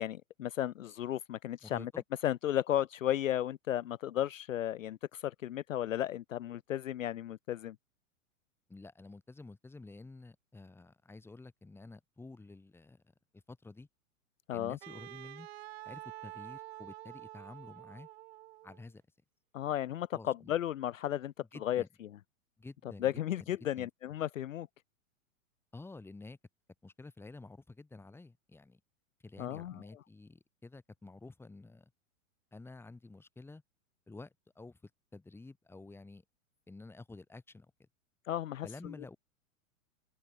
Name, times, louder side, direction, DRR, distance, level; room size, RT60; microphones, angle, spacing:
voice 1, 0.0-1.9 2.2-7.8 14.5-14.8 19.5-21.3 21.6-21.8 23.0-24.7 29.4-29.8 38.3-38.9, left 12 dB, 70° left, 0.5 m, -34 dB
voice 2, 1.6-2.0 8.7-13.0 13.3-13.9 14.5-15.5 15.9-18.1 18.6-19.0 20.1-20.5 21.5-21.9 22.6-23.1 23.4-23.5 23.8-23.9 25.7-26.4 26.8-28.8 29.2-31.9 32.5-33.6 34.1-36.2 36.7-37.7 38.6-39.2, left 3 dB, 5° left, 1.9 m, -50 dB
Wind instrument woodwind instrument, 14.8-18.9, right 16 dB, 45° right, 1.6 m, -48 dB
open air
figure-of-eight pair, 100°, 41 cm